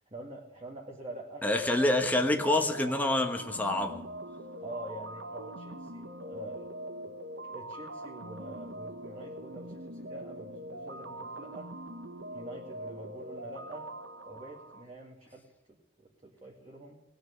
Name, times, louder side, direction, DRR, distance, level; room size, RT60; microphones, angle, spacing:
voice 1, 0.1-1.5 4.6-6.7 7.0-7.1 7.5-11.7 12.3-13.9 14.3-15.5 16.0-17.0, right 1 dB, 30° right, 2.1 m, -45 dB
voice 2, 1.4-4.0, left 1 dB, 10° left, 1.1 m, -27 dB
sound 1, 2.0-14.8, right 1 dB, 80° right, 1.3 m, -43 dB
19.0 x 6.5 x 9.6 m
head